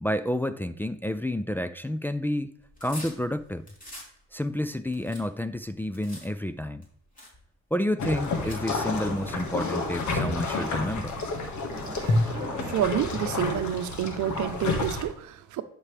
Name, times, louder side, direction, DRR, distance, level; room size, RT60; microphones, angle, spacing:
voice 1, 0.0-2.5 2.8-3.7 4.3-6.8 7.7-11.1, left 1 dB, 5° left, 0.4 m, -30 dB
sound 1, 2.6-4.1 4.6-6.3 6.8-6.9 7.2-7.4 8.2-9.1, left 1 dB, 25° left, 3.2 m, -45 dB
sound 2, 8.0-15.0, left 3 dB, 70° left, 1.8 m, -29 dB
sound 3, 8.3-13.3, right 1 dB, 15° right, 2.9 m, -46 dB
voice 2, 12.6-15.6, right 11 dB, 75° right, 0.8 m, -29 dB
11.0 x 6.0 x 3.3 m
cardioid pair, 90°, 30 cm